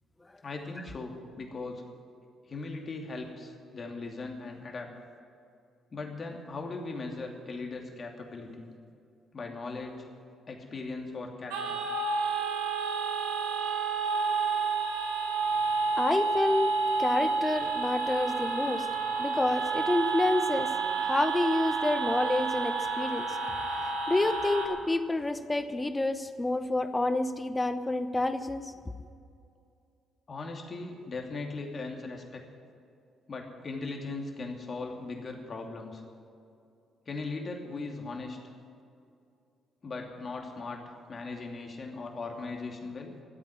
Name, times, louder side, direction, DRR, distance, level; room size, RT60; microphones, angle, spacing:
voice 1, 0.4-1.8 2.4-4.9 5.9-8.7 9.3-10.1 10.5-11.8 30.3-32.4 33.3-36.0 37.1-38.4 39.8-40.8 41.1-43.1, left 3 dB, 45° left, 2 dB, 2.7 m, -38 dB
sound 1, 11.5-24.7, right 4 dB, 80° right, 1.7 m, -30 dB
voice 2, 16.0-18.9 19.2-20.7 21.0-23.4 23.8-28.7, left 2 dB, 20° left, 11 dB, 1.0 m, -29 dB
14.0 x 8.3 x 9.9 m, 2.5 s
hypercardioid pair, 50°, 0 cm